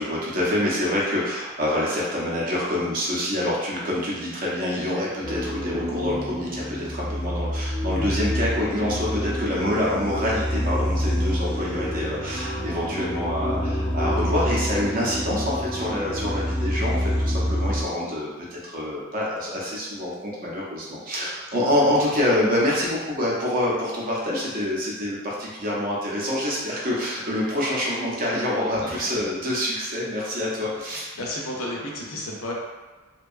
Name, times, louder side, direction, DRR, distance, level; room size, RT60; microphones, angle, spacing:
voice 1, 0.0-31.1, left 1 dB, 40° right, -5 dB, 0.5 m, -26 dB
sound 1, 5.2-17.8, equal, 15° left, 0.6 m, -27 dB
voice 2, 28.7-29.0 30.9-32.5, left 1 dB, 70° left, -2 dB, 0.5 m, -33 dB
2.7 x 2.2 x 2.4 m, 1.3 s
head